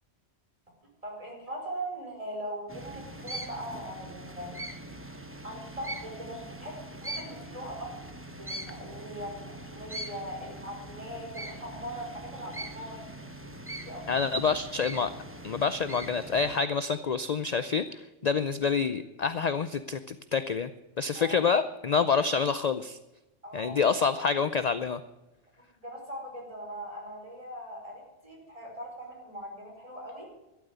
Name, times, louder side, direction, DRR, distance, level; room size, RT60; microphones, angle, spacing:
voice 1, 1.0-4.5 5.4-7.9 8.4-13.1 13.8-14.0 21.1-21.4 23.4-23.8 25.8-30.3, right 1 dB, 30° right, -1 dB, 5.3 m, -40 dB
sound 1, 2.7-16.6, right 1 dB, 10° right, 1.0 m, -42 dB
voice 2, 14.1-15.1 15.4-20.7 21.0-23.0 23.5-25.0, left 5 dB, 45° left, 12 dB, 0.6 m, -27 dB
13.0 x 12.0 x 8.1 m, 1.0 s
omnidirectional pair, 1.2 m